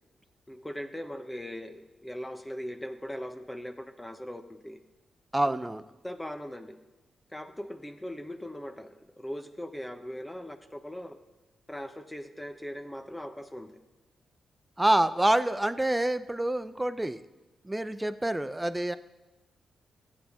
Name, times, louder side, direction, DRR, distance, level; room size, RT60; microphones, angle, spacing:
voice 1, 0.5-4.8 5.4-5.5 6.0-6.8 7.3-11.2 11.7-13.8, equal, 10° left, 7 dB, 0.9 m, -40 dB
voice 2, 5.3-5.8 14.8-17.2 17.6-19.0, right 1 dB, 10° right, 12 dB, 0.5 m, -27 dB
15.0 x 8.7 x 3.6 m, 1.1 s
cardioid pair, 75°, 0 cm